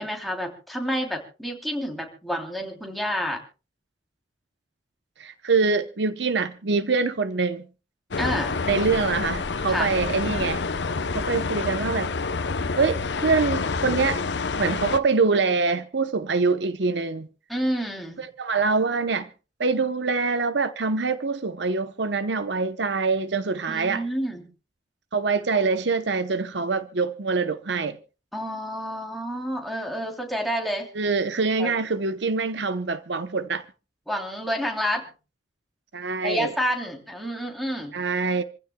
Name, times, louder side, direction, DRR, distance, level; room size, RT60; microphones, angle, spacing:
voice 1, 0.0-3.4 8.2-8.6 9.7-9.9 17.5-18.2 23.7-24.4 28.3-30.9 31.6-31.7 34.1-35.1 36.2-37.9, equal, ahead, 3.1 m, -29 dB
voice 2, 5.2-7.7 8.7-10.6 11.1-12.1 12.8-14.2 14.6-17.3 18.2-19.3 19.6-24.0 25.1-28.0 30.9-33.6 35.9-36.5 37.9-38.4, right 4 dB, 70° right, 0.8 m, -24 dB
sound 1, 8.1-15.0, left 4 dB, 70° left, 0.8 m, -28 dB
27.0 x 15.5 x 2.3 m
head